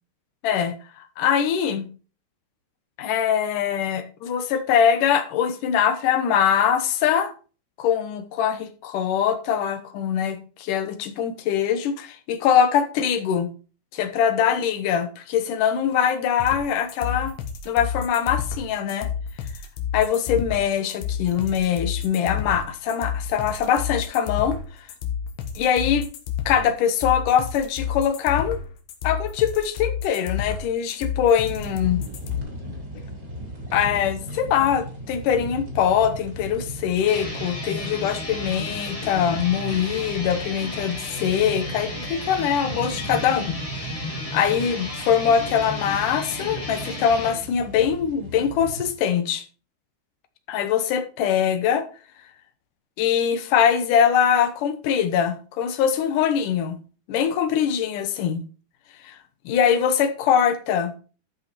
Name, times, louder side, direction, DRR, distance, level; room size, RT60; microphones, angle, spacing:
voice 1, 0.4-1.9 3.0-7.3 7.8-13.5 13.9-17.4 17.7-19.1 19.9-24.6 25.6-26.1 26.5-28.6 29.0-32.0 33.7-43.6 44.3-49.4 50.5-51.8 53.0-56.8 57.1-58.4 59.0-59.2 59.5-60.9, left 8 dB, 70° left, 2.1 m, -22 dB
sound 1, 16.4-32.4, left 8 dB, 85° left, 3.9 m, -30 dB
sound 2, 31.4-48.9, equal, 25° right, 3.3 m, -37 dB
sound 3, 37.0-47.4, left 1 dB, 25° left, 0.7 m, -33 dB
13.0 x 5.6 x 4.4 m
omnidirectional pair, 5.1 m